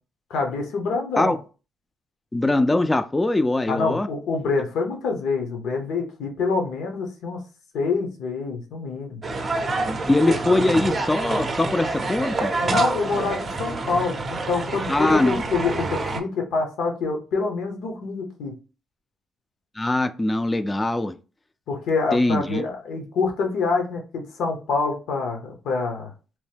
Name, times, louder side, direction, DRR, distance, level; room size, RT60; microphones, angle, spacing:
voice 1, 0.3-1.4 3.7-7.4 7.7-9.2 10.3-10.4 12.6-18.6 21.7-26.1, left 4 dB, 80° left, 0.8 m, -26 dB
voice 2, 2.3-4.1 10.1-12.5 14.9-15.4 19.8-21.1 22.1-22.6, left 2 dB, 15° left, 0.3 m, -22 dB
sound 1, 9.2-16.2, right 3 dB, 40° right, 0.5 m, -27 dB
3.0 x 2.1 x 3.3 m
cardioid pair, 90°, 0 cm